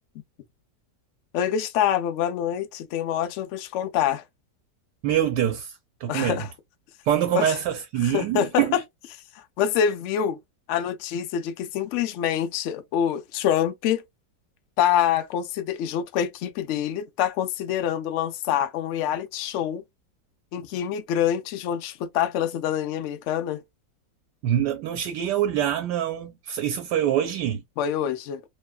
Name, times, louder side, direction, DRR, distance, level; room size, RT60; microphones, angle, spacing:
voice 1, 1.3-4.2 6.1-6.5 7.3-7.6 8.0-8.6 9.3-10.4 10.7-14.0 14.8-19.8 20.5-23.6 27.8-28.4, left 9 dB, 80° left, 0.6 m, -26 dB
voice 2, 5.0-6.5 7.0-8.8 24.4-27.6, right 10 dB, 80° right, 1.2 m, -25 dB
3.0 x 2.3 x 2.2 m
omnidirectional pair, 1.9 m